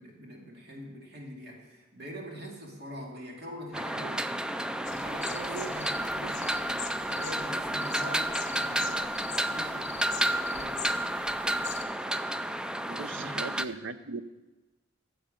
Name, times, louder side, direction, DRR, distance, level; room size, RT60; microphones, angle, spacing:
voice 1, 0.0-4.3 4.9-6.6 7.1-9.2 9.5-10.8 13.1-13.5, right 1 dB, 60° right, 0 dB, 2.4 m, -43 dB
sound 1, 3.7-13.7, right 1 dB, 5° right, 0.3 m, -31 dB
sound 2, 4.8-11.8, left 7 dB, 40° left, 0.9 m, -43 dB
voice 2, 12.9-14.2, right 4 dB, 75° right, 13 dB, 0.6 m, -38 dB
14.0 x 7.9 x 5.1 m, 1.1 s
head